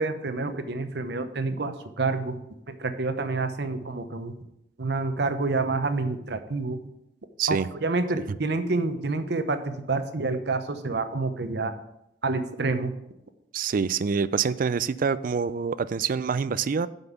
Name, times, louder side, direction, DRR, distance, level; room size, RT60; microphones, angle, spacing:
voice 1, 0.0-2.4 2.7-4.3 4.8-6.8 7.5-11.7 12.2-12.9, right 3 dB, 65° right, 0.8 m, -28 dB
voice 2, 7.4-7.7 8.3-8.4 13.5-16.9, right 6 dB, 50° right, 0.4 m, -26 dB
7.9 x 5.5 x 7.2 m
head